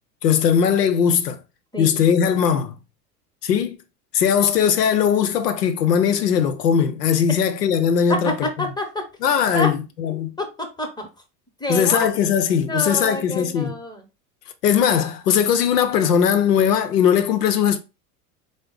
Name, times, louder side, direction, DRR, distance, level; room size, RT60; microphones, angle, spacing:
voice 1, 0.2-1.4 1.8-2.7 3.4-3.8 4.1-8.5 9.2-10.3 11.7-13.8 14.6-17.8, left 8 dB, 85° left, 0.6 m, -19 dB
voice 2, 8.1-9.1 9.5-9.7 10.4-11.1 11.6-12.1 12.7-14.0, left 1 dB, 10° left, 0.8 m, -27 dB
3.6 x 2.0 x 3.7 m
hypercardioid pair, 80°, 46 cm